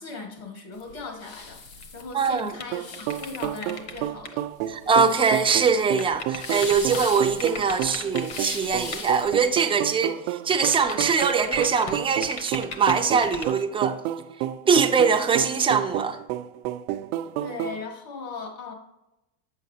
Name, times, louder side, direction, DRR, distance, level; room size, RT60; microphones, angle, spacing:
voice 1, 0.0-4.5 17.4-18.7, left 4 dB, 60° left, 2.1 m, -38 dB
sound 1, 0.7-9.4, left 4 dB, 75° left, 1.9 m, -40 dB
sound 2, 1.7-4.0 4.2-4.3 6.0-7.1 7.4-8.4 8.9-9.0 10.5-13.6, left 4 dB, 35° left, 1.1 m, -36 dB
voice 2, 2.1-2.5 4.7-14.0 14.7-16.2, right 5 dB, 15° right, 0.4 m, -22 dB
sound 3, 2.7-17.8, right 12 dB, 80° right, 0.6 m, -31 dB
8.2 x 7.1 x 2.8 m
supercardioid pair, 140°, 43 cm